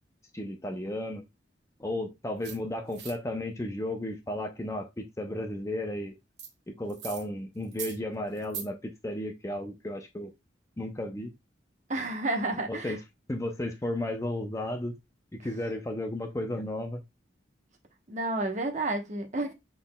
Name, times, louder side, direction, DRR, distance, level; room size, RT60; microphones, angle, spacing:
voice 1, 0.3-1.2 1.8-6.2 6.7-10.3 10.8-11.3 12.7-13.0 13.3-14.9 15.4-17.0, left 1 dB, 15° left, 0.5 m, -34 dB
sound 1, 2.4-2.5 2.9-3.1 6.4-6.5 6.9-7.2 7.6-7.9 8.3-8.6, right 7 dB, 65° right, 1.2 m, -39 dB
voice 2, 11.9-13.0 18.1-19.5, right 2 dB, 40° right, 1.0 m, -30 dB
6.0 x 3.7 x 2.2 m
head